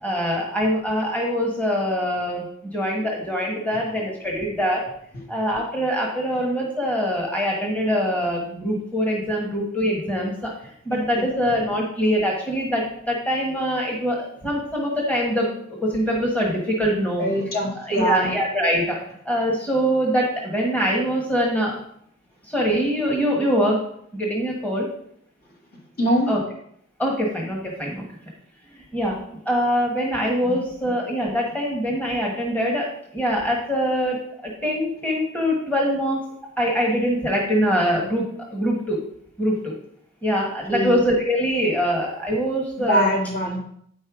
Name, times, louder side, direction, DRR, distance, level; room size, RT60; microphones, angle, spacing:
voice 1, 0.0-4.8 5.3-10.5 10.8-15.5 15.8-17.3 17.9-19.0 19.2-21.7 22.5-23.8 24.1-24.9 26.3-26.4 27.0-28.0 28.9-29.2 29.4-32.9 33.1-36.2 36.6-39.0 39.4-39.7 40.2-43.1, equal, 10° left, -2 dB, 1.3 m, -23 dB
voice 2, 17.2-18.3 26.0-26.3 30.4-30.5 40.7-41.0 42.8-43.6, right 1 dB, 50° left, -1 dB, 2.0 m, -23 dB
8.7 x 5.4 x 4.9 m, 0.70 s
head